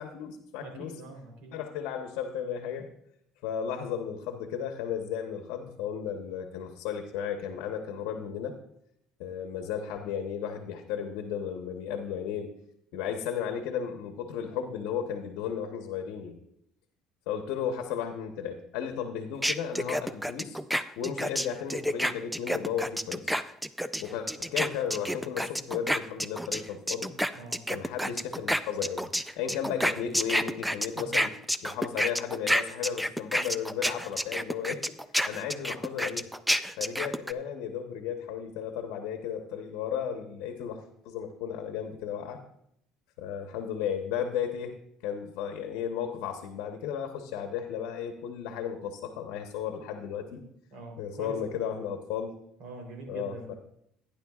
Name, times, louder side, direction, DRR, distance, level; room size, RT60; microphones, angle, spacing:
voice 1, 0.0-0.9 1.5-2.9 3.4-8.6 9.2-12.5 12.9-16.4 17.3-20.6 21.0-23.3 24.0-27.1 27.7-29.1 29.4-31.3 31.6-34.8 35.3-36.3 36.8-42.4 43.2-50.4 51.0-52.4 53.1-53.5, left 8 dB, 80° left, 5 dB, 1.0 m, -34 dB
voice 2, 0.6-1.6 27.3-27.7 31.0-31.2 50.7-51.4 52.6-53.6, right 3 dB, 70° right, 1 dB, 3.5 m, -44 dB
sound 1, 19.4-26.6 26.9-37.3, equal, ahead, 0.4 m, -29 dB
14.5 x 10.0 x 2.4 m, 0.74 s
cardioid pair, 115°, 0 cm